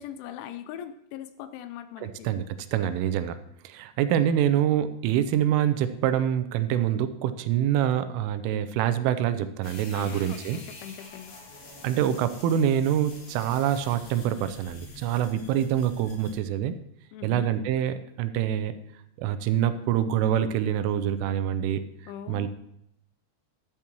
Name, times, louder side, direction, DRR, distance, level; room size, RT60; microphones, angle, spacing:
voice 1, 0.0-2.3 9.9-11.3 17.1-17.6 22.1-22.5, left 10 dB, 85° left, 11 dB, 2.9 m, -40 dB
voice 2, 2.0-2.4 2.7-3.4 3.6-10.6 11.8-16.8 17.2-18.7 19.2-21.8 22.3-22.5, right 10 dB, 85° right, 11 dB, 3.2 m, -25 dB
sound 1, 9.6-16.4, left 3 dB, 55° left, 3.9 m, -46 dB
12.5 x 11.0 x 3.0 m, 0.78 s
omnidirectional pair, 5.6 m